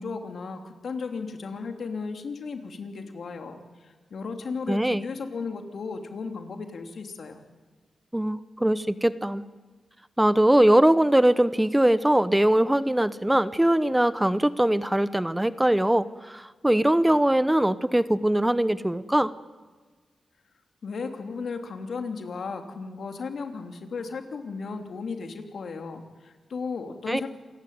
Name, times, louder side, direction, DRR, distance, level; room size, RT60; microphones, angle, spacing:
voice 1, 0.0-7.4 20.8-27.3, left 4 dB, 70° left, 5 dB, 3.0 m, -35 dB
voice 2, 4.7-5.0 8.1-9.4 10.2-19.3 27.1-27.2, right 1 dB, 10° right, 15 dB, 0.8 m, -21 dB
27.0 x 16.0 x 9.5 m, 1.4 s
cardioid pair, 75°, 0 cm